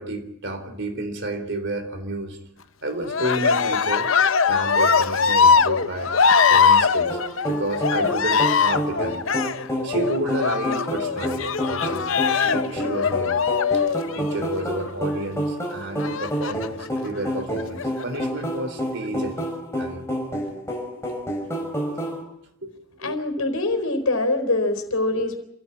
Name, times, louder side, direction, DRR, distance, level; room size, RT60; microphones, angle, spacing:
voice 1, 0.0-2.4 2.8-4.1 4.5-6.1 6.4-7.2 7.4-9.5 9.8-13.4 14.1-19.4 19.8-20.0 21.8-22.0 22.6-22.7 23.0-23.2 25.1-25.3, right 1 dB, 55° right, 7 dB, 3.6 m, -31 dB
Cheering, 3.0-14.7 16.0-16.9 17.6-18.2, left 5 dB, 65° left, 0.8 m, -21 dB
sound 1, 7.1-22.2, equal, 15° left, 5.4 m, -29 dB
voice 2, 23.0-25.4, left 2 dB, 80° left, 6 dB, 4.1 m, -24 dB
27.0 x 14.5 x 8.8 m, 0.79 s
head